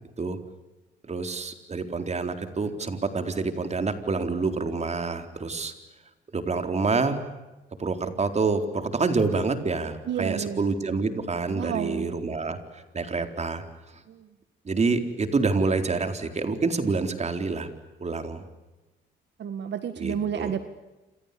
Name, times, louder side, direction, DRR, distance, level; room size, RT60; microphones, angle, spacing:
voice 1, 1.1-5.7 6.3-7.2 7.8-13.6 14.6-17.7 18.0-18.4 20.0-20.5, right 4 dB, 35° right, 7 dB, 4.2 m, -27 dB
voice 2, 10.1-10.7 11.5-12.4 14.1-14.3 19.4-20.6, right 8 dB, 65° right, 9 dB, 1.9 m, -31 dB
28.5 x 28.5 x 6.9 m, 1.1 s
cardioid pair, 90°, 20 cm